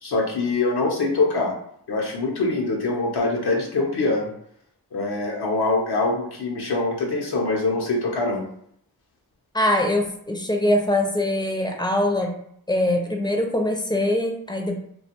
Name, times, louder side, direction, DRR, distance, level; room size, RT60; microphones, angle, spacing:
voice 1, 0.0-1.5 1.9-4.3 4.9-8.4, left 3 dB, 75° left, -1 dB, 0.6 m, -24 dB
voice 2, 9.5-12.3 12.7-14.8, left 1 dB, 10° left, 2 dB, 0.4 m, -23 dB
2.4 x 2.2 x 2.8 m, 0.69 s
wide cardioid pair, 60°, 39 cm